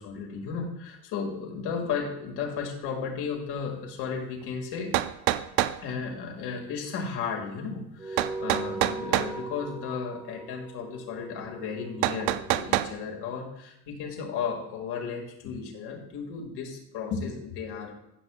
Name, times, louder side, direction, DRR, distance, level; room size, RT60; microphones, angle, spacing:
voice 1, 0.0-5.0 5.8-17.9, left 6 dB, 60° left, 1 dB, 2.2 m, -34 dB
sound 1, 4.4-4.5 4.9-5.8 8.2-9.3 12.0-12.9, right 15 dB, 70° right, 0.5 m, -26 dB
sound 2, 8.0-12.8, right 2 dB, 10° right, 0.4 m, -39 dB
15.5 x 6.3 x 2.4 m, 0.81 s
cardioid pair, 125°, 45 cm